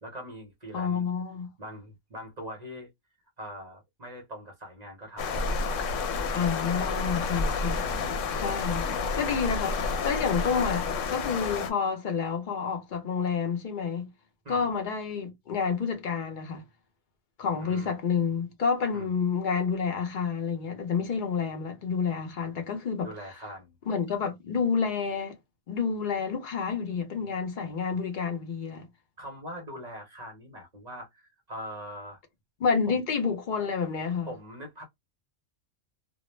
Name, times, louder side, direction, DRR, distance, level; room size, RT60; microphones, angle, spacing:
voice 1, 0.0-1.1 1.6-2.9 3.4-5.6 5.9-6.2 14.4-14.7 17.5-17.9 18.9-19.1 23.0-23.7 29.2-32.2 32.9-33.0 34.2-34.8, equal, 45° right, 0.6 m, -42 dB
voice 2, 0.7-1.5 6.3-7.8 8.3-14.1 14.5-16.6 17.4-23.1 23.9-25.4 25.7-28.9 32.6-34.3, left 6 dB, 50° left, 0.6 m, -29 dB
sound 1, 5.2-11.7, left 4 dB, 80° left, 0.9 m, -30 dB
2.2 x 2.0 x 3.0 m
omnidirectional pair, 1.3 m